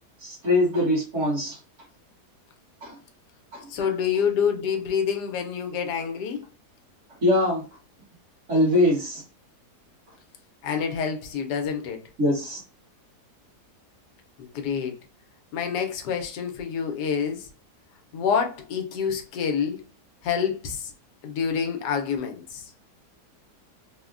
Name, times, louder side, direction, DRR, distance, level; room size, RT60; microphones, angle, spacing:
voice 1, 0.2-1.6 2.8-3.0 3.5-3.6 7.2-7.6 8.5-9.2 12.2-12.6, left 1 dB, 50° right, 1.4 m, -22 dB
voice 2, 3.7-6.4 10.6-12.0 14.4-15.0 15.5-17.5 18.1-19.8 20.2-20.9 21.2-22.7, left 7 dB, 85° left, 1.2 m, -27 dB
3.6 x 2.1 x 2.4 m
omnidirectional pair, 1.8 m